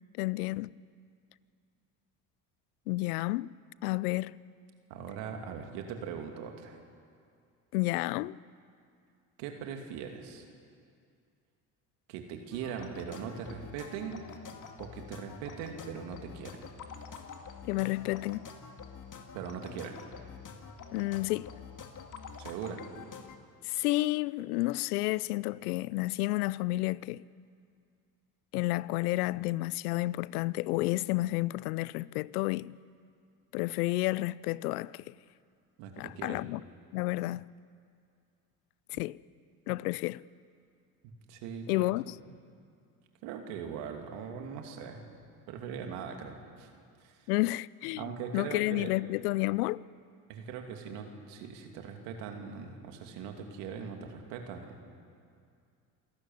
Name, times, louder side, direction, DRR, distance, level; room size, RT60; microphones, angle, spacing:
voice 1, 0.2-0.7 2.9-3.5 3.8-4.4 7.7-8.4 17.7-18.5 20.9-21.5 23.6-27.2 28.5-32.8 33.5-35.1 36.0-36.6 36.9-37.4 38.9-39.2 39.7-40.2 41.7-42.2 47.3-49.8, left 20 dB, 85° left, 0.6 m, -31 dB
voice 2, 4.9-6.8 9.4-10.4 12.1-14.2 14.8-16.6 19.3-20.0 22.4-22.8 35.8-36.4 38.9-39.0 41.3-41.9 43.2-45.0 45.5-46.7 47.0-47.2 48.0-48.9 50.3-54.8, right 7 dB, 75° right, 2.8 m, -40 dB
sound 1, 12.5-23.4, left 6 dB, 45° left, 2.3 m, -47 dB
26.5 x 12.5 x 9.3 m
hypercardioid pair, 65°, 44 cm